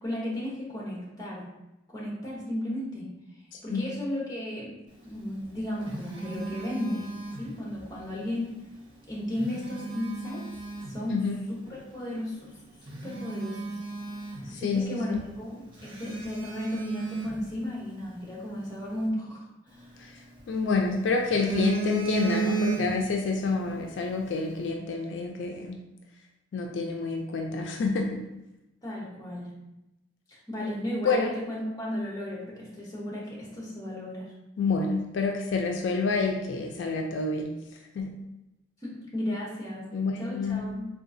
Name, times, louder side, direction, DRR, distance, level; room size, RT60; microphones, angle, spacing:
voice 1, 0.0-1.5 1.9-3.1 3.6-4.7 5.0-7.1 7.4-8.5 9.1-10.4 10.9-11.2 11.5-12.5 13.0-13.8 14.5-19.4 19.7-19.9 28.8-29.5 30.3-34.3 38.8-39.8 40.2-40.9, left 1 dB, 20° left, -4 dB, 0.7 m, -34 dB
Telephone, 5.3-7.9 9.1-11.0 11.7-11.8 12.4-12.5 12.8-14.9 15.1-15.3 15.8-18.1 19.7-20.7 21.0-23.2 23.5-23.7, right 4 dB, 25° right, 0.7 m, -34 dB
voice 2, 14.5-15.3 20.0-20.1 20.5-25.8 26.5-28.2 30.6-30.7 31.0-31.3 34.6-37.5 38.0-38.1 39.9-40.7, left 4 dB, 70° left, 2 dB, 0.3 m, -28 dB
3.7 x 2.3 x 2.5 m, 0.94 s
head